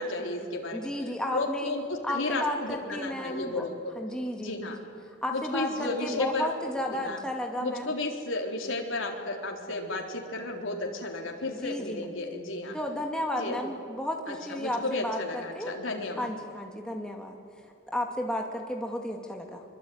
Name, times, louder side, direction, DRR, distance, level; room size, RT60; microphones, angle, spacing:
voice 1, 0.0-0.9 1.3-3.8 4.4-4.8 5.3-6.5 6.9-7.2 7.6-12.7 13.4-13.6 14.3-16.3, left 2 dB, 75° left, 1 dB, 3.9 m, -33 dB
voice 2, 0.7-1.7 2.0-3.6 4.0-4.7 5.2-7.9 11.5-12.1 12.7-15.7 16.2-17.4 17.9-19.6, left 1 dB, 5° left, 1 dB, 2.5 m, -33 dB
24.0 x 24.0 x 9.5 m, 2.5 s
head